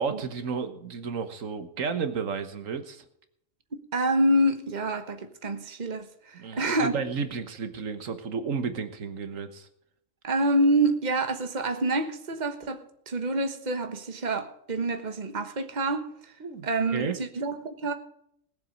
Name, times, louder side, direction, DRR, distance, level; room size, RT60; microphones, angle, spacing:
voice 1, 0.0-3.0 6.3-9.7 16.4-17.1, right 5 dB, 80° right, 1.6 m, -32 dB
voice 2, 3.7-6.9 10.2-16.1 16.6-17.9, right 1 dB, 35° right, 1.3 m, -27 dB
19.5 x 7.5 x 5.1 m
omnidirectional pair, 1.3 m